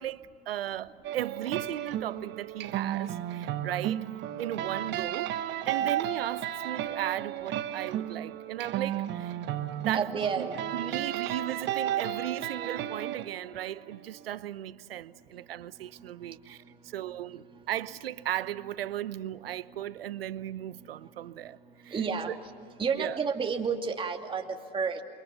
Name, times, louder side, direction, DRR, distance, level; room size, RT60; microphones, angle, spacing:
voice 1, 0.0-4.0 4.4-5.3 5.7-9.4 9.8-21.6 21.8-22.0 22.3-22.4 23.0-23.2, right 12 dB, 80° right, 0.9 m, -36 dB
sound 1, 1.0-14.3, right 11 dB, 40° right, 1.5 m, -33 dB
voice 2, 9.7-10.9 15.3-17.7 19.5-20.3 20.7-22.3 22.8-25.0, right 5 dB, 20° right, 2.5 m, -34 dB
28.0 x 24.0 x 7.0 m
hypercardioid pair, 105°, 29 cm